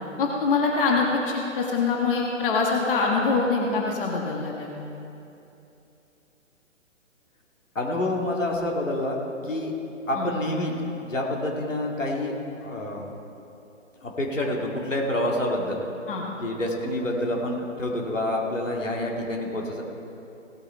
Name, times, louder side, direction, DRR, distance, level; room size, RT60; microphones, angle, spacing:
voice 1, 0.2-4.7 10.1-10.3 16.1-16.2, left 4 dB, 45° left, -1 dB, 1.6 m, -24 dB
voice 2, 7.7-9.2 9.4-9.7 10.1-12.4 12.6-13.0 14.0-15.8 16.4-19.8, left 1 dB, 80° left, -1 dB, 2.4 m, -27 dB
17.0 x 8.7 x 4.5 m, 2.8 s
figure-of-eight pair, 130°, 38 cm